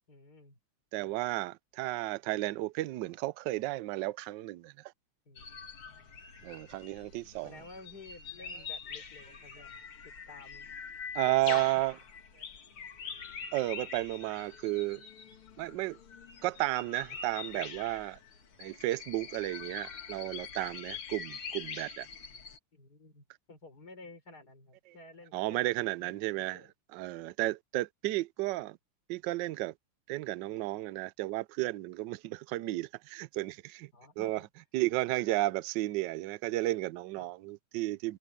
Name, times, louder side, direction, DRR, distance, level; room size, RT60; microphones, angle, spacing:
voice 1, 0.1-0.6 1.0-1.2 5.3-5.7 7.4-9.7 10.0-10.8 11.2-11.6 22.7-26.7 33.9-34.5 37.2-37.3, left 2 dB, 45° left, 5.4 m, -53 dB
voice 2, 0.9-4.9 6.4-7.5 11.1-11.9 13.5-15.1 15.6-16.0 16.4-18.2 18.6-22.1 25.3-26.6 26.9-28.8 29.1-29.7 30.1-33.9 34.2-34.4 34.7-38.2, right 18 dB, 75° right, 1.1 m, -33 dB
sound 1, 5.4-22.6, left 6 dB, 75° left, 2.9 m, -44 dB
omnidirectional pair, 2.3 m